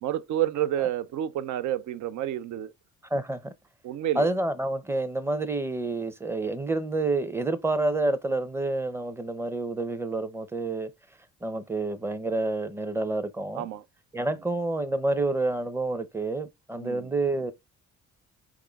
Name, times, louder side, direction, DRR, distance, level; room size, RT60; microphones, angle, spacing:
voice 1, 0.0-2.7 3.8-4.3 13.6-13.8 16.8-17.1, right 11 dB, 75° right, 0.5 m, -29 dB
voice 2, 3.1-3.5 4.2-10.9 11.4-13.7 14.1-17.5, right 2 dB, 10° right, 0.6 m, -28 dB
4.8 x 3.6 x 2.3 m
cardioid pair, 90°, 30 cm